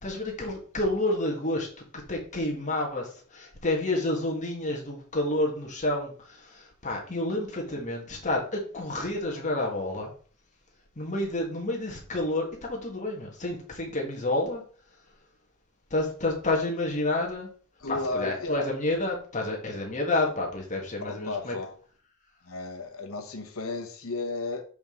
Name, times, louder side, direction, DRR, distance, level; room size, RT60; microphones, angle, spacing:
voice 1, 0.0-1.7 2.1-10.1 11.0-14.6 15.9-17.5 17.9-21.5, left 2 dB, 35° left, 0 dB, 1.7 m, -29 dB
voice 2, 17.8-18.7 21.0-21.7 22.4-24.6, left 3 dB, 70° left, 4 dB, 1.2 m, -34 dB
7.0 x 5.1 x 3.7 m, 0.43 s
head